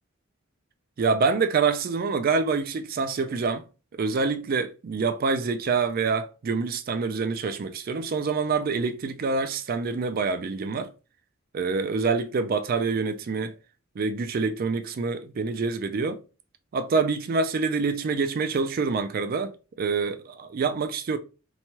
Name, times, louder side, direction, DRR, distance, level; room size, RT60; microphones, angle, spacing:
voice 1, 1.0-3.6 3.9-10.9 11.5-13.5 14.0-16.2 16.7-21.2, right 4 dB, 45° right, 0.3 m, -26 dB
2.9 x 2.2 x 2.8 m
head